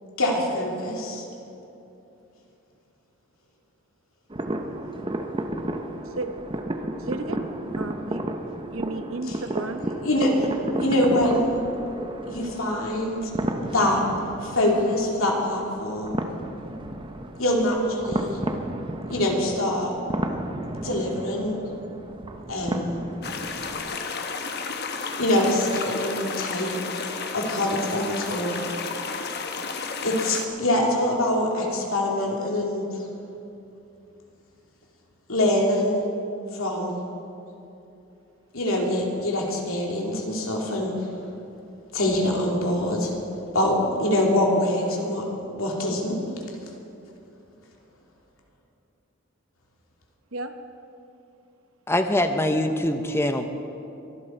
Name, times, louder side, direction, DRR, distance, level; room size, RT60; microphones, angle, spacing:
voice 1, 0.2-1.2 9.3-9.4 10.0-10.3 10.8-11.6 12.3-13.3 13.6-14.0 14.4-16.2 17.4-18.4 19.1-19.9 20.8-21.6 22.5-23.0 25.2-26.7 27.3-28.6 30.0-32.8 35.3-36.0 36.5-37.0 38.5-41.1 41.9-43.1 43.5-45.2 45.5-46.2, left 1 dB, 80° left, -1 dB, 2.8 m, -24 dB
sound 1, 4.3-24.0, right 1 dB, 25° right, 0.8 m, -33 dB
voice 2, 7.0-7.4 7.8-8.2 8.7-9.8 50.3-50.5, right 2 dB, 70° right, 7 dB, 1.0 m, -33 dB
sound 2, 23.2-30.4, left 5 dB, 50° left, 1.0 m, -32 dB
voice 3, 51.9-53.5, left 1 dB, 10° left, 7 dB, 0.7 m, -23 dB
23.5 x 11.5 x 4.5 m, 2.8 s
head